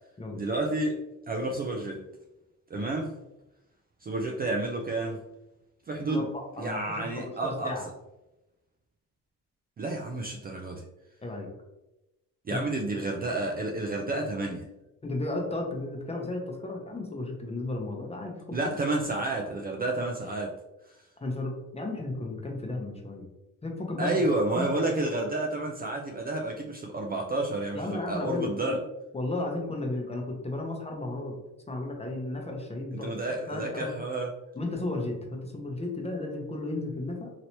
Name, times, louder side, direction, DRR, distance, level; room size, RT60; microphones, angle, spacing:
voice 1, 0.3-1.0 1.3-2.1 2.7-3.1 4.0-5.2 5.9-6.3 6.6-7.8 9.8-10.8 12.5-14.7 18.5-20.6 24.0-28.8 32.9-34.3, right 2 dB, 30° right, 1 dB, 0.4 m, -30 dB
voice 2, 6.1-7.9 11.2-11.5 12.5-12.6 15.0-18.6 21.2-23.3 23.6-24.7 27.7-28.8 29.1-31.3 31.7-33.9 34.5-37.3, left 2 dB, 20° left, 1 dB, 0.8 m, -34 dB
3.0 x 2.8 x 2.9 m, 0.97 s
supercardioid pair, 80°, 34 cm